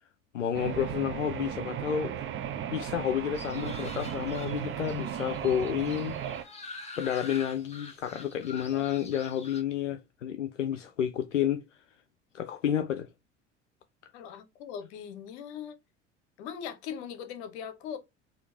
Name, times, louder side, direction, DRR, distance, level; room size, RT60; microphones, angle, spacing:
voice 1, 0.3-2.2 2.7-6.2 6.4-6.6 7.0-11.8 12.3-13.1, left 9 dB, 85° left, 0.5 m, -30 dB
sound 1, 0.5-6.4, right 9 dB, 35° right, 0.7 m, -36 dB
sound 2, 3.3-9.6, left 3 dB, 20° left, 1.2 m, -46 dB
voice 2, 14.1-15.8 16.4-18.0, left 8 dB, 65° left, 1.0 m, -40 dB
4.5 x 2.7 x 3.3 m
figure-of-eight pair, 65°, 36 cm